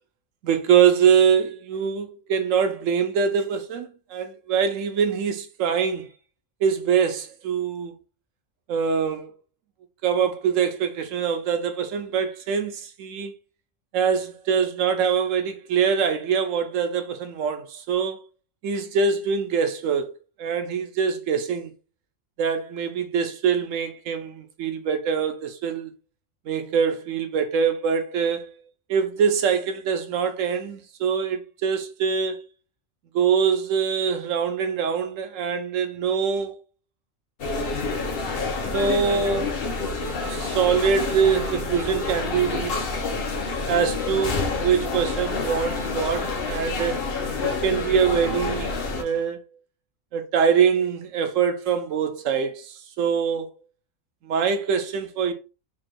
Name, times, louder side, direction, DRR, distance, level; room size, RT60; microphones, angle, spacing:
voice 1, 0.4-6.1 6.6-7.9 8.7-9.3 10.0-13.3 13.9-18.2 18.6-20.1 20.4-21.7 22.4-25.9 26.5-28.5 28.9-32.4 33.1-36.6 38.6-39.6 40.2-42.9 43.5-47.0 47.4-49.4 50.1-53.5 54.2-55.3, right 6 dB, 85° right, 1.1 m, -24 dB
sound 1, 37.4-49.0, left 3 dB, 50° left, 1.0 m, -28 dB
3.7 x 2.5 x 4.5 m
omnidirectional pair, 1.3 m